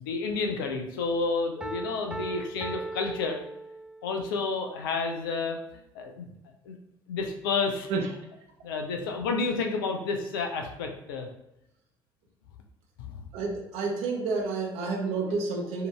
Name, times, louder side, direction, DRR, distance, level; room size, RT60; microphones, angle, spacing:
voice 1, 0.0-3.4 4.0-5.6 5.9-6.3 6.7-6.8 7.1-7.9 8.6-11.3 13.0-13.3, left 4 dB, 70° left, 3 dB, 0.5 m, -30 dB
Piano, 1.6-4.2, right 2 dB, 10° right, 0.3 m, -38 dB
voice 2, 13.3-15.9, right 4 dB, 55° right, 0 dB, 0.9 m, -29 dB
6.4 x 2.7 x 2.2 m, 0.87 s
figure-of-eight pair, 50°, 12 cm